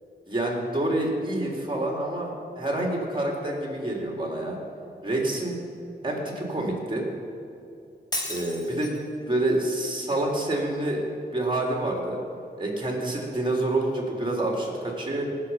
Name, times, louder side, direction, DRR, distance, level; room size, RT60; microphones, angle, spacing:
voice 1, 0.3-4.6 5.0-5.6 6.0-7.1 8.3-8.9 9.3-11.0 11.3-12.2 12.6-15.2, right 1 dB, 25° right, -1 dB, 3.7 m, -27 dB
Shatter, 8.1-9.1, left 1 dB, 20° left, 2.3 m, -33 dB
18.5 x 7.5 x 5.8 m, 2.5 s
cardioid pair, 60°, 18 cm